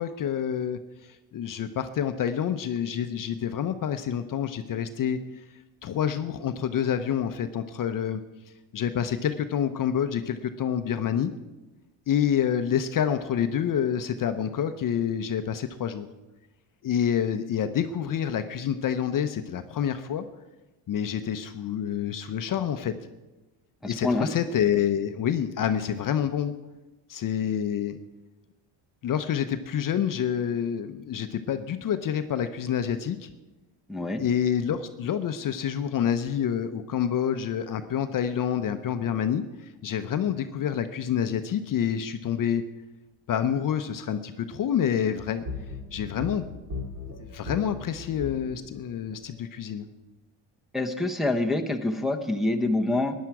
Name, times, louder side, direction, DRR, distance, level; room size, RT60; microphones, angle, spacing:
voice 1, 0.0-5.2 5.8-8.2 8.7-11.3 12.1-16.1 16.8-20.2 20.9-22.9 23.8-26.5 27.1-28.0 29.0-33.3 34.2-39.4 39.8-42.6 43.3-45.4 45.9-46.6 47.3-49.9, left 9 dB, 45° left, 9 dB, 0.7 m, -27 dB
voice 2, 23.8-24.3 33.9-34.2 50.7-53.1, left 2 dB, ahead, 2 dB, 0.9 m, -26 dB
sound 1, 45.5-49.2, left 3 dB, 40° right, 3.1 m, -38 dB
15.0 x 10.5 x 4.7 m, 1.1 s
cardioid pair, 120°, 48 cm